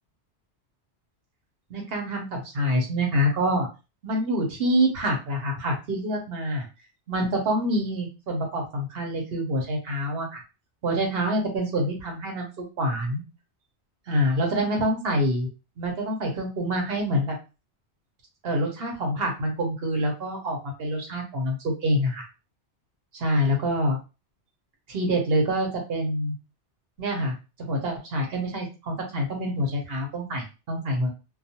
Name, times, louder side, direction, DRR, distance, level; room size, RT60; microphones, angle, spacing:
voice 1, 1.7-3.7 4.0-6.6 7.1-10.4 10.8-13.2 14.1-15.5 15.8-17.4 18.4-22.2 23.2-24.0 24.9-26.3 27.0-27.3 27.7-31.1, equal, 60° right, 2 dB, 1.0 m, -26 dB
2.3 x 2.3 x 2.8 m, 0.30 s
omnidirectional pair, 1.2 m